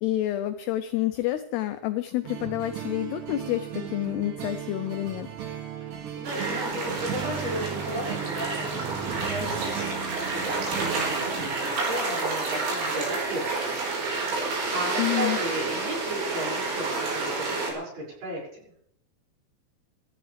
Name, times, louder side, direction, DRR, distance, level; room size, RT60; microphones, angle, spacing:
voice 1, 0.0-5.3 15.0-15.4, left 14 dB, 80° left, 9 dB, 2.4 m, -28 dB
sound 1, 2.2-11.5, right 9 dB, 65° right, 4.2 m, -36 dB
voice 2, 5.8-13.8 14.2-18.6, right 1 dB, 45° right, -4 dB, 7.6 m, -35 dB
sound 2, 6.2-17.7, right 3 dB, 90° right, 7.3 m, -29 dB
26.0 x 13.5 x 3.4 m, 0.72 s
omnidirectional pair, 5.4 m